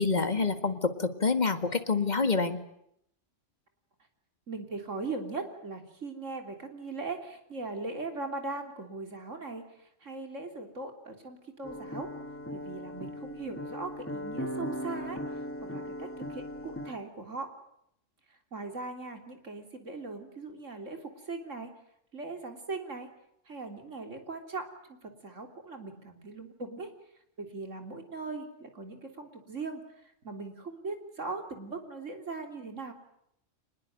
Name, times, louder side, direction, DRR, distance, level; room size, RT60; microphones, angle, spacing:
voice 1, 0.0-2.6, left 4 dB, 35° left, 9 dB, 1.9 m, -27 dB
voice 2, 4.5-9.6 10.0-12.1 12.5-15.2 15.6-17.5 18.5-21.7 22.1-23.1 23.5-24.7 25.0-26.9 27.4-29.8 30.2-32.9, right 3 dB, 70° right, 5 dB, 3.8 m, -39 dB
sound 1, 11.6-16.9, equal, 10° left, 1.7 m, -38 dB
25.0 x 20.5 x 9.3 m, 0.76 s
omnidirectional pair, 1.3 m